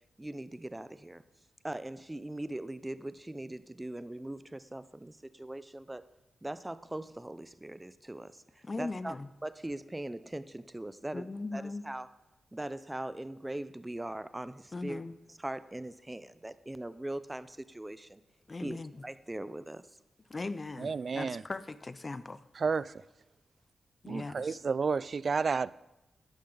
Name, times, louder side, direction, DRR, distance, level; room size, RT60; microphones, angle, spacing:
voice 1, 0.2-1.2 1.6-6.0 6.4-9.2 9.4-12.1 12.5-15.0 15.4-18.2 18.6-18.8 19.0-19.9, right 1 dB, 15° right, 0.6 m, -40 dB
voice 2, 8.6-9.3 11.1-11.8 14.7-15.2 18.5-18.9 20.3-22.4 24.0-24.6, left 3 dB, 35° left, 0.5 m, -39 dB
voice 3, 20.8-21.4 22.6-22.9 24.1-25.7, right 5 dB, 55° right, 0.3 m, -31 dB
11.5 x 10.0 x 3.9 m
cardioid pair, 65°, 0 cm